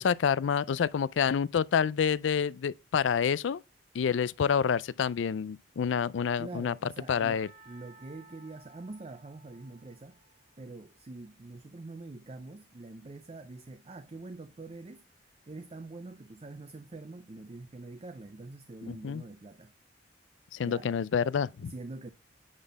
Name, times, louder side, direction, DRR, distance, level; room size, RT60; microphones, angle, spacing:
voice 1, 0.0-3.6 3.9-6.7 7.1-7.5 18.9-19.2 20.5-21.7, left 7 dB, 80° left, 0.4 m, -28 dB
voice 2, 6.4-10.2 10.6-19.7 20.6-20.9 21.6-22.1, right 2 dB, 35° right, 0.5 m, -45 dB
Percussion / Church bell, 7.1-11.0, right 2 dB, 50° right, 2.9 m, -57 dB
9.7 x 4.1 x 4.0 m
head